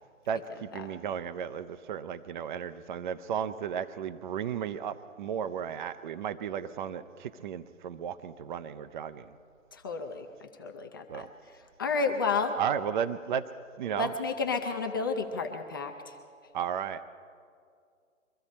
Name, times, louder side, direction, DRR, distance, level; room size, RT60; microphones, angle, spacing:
voice 1, 0.3-9.3 11.1-11.3 12.6-13.5 13.8-14.1 16.5-17.0, right 8 dB, 40° right, 12 dB, 0.6 m, -34 dB
voice 2, 9.7-11.3 11.8-12.6 13.9-16.2, left 4 dB, 20° left, 3 dB, 0.4 m, -31 dB
23.5 x 14.0 x 4.2 m, 2.2 s
figure-of-eight pair, 130°, 40 cm